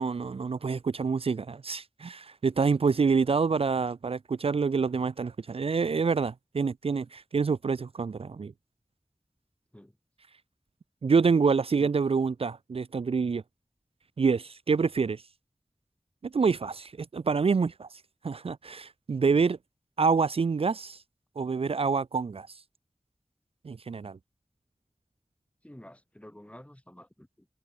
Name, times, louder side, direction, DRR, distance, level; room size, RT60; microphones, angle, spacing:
voice 1, 0.0-8.5 11.0-13.4 14.2-15.2 16.2-17.9 18.2-19.6 20.0-21.0 21.4-22.5 23.6-24.2, right 5 dB, 65° right, 0.4 m, -27 dB
voice 2, 25.6-27.5, left 1 dB, 10° left, 2.0 m, -50 dB
wide cardioid pair, 50°, 11 cm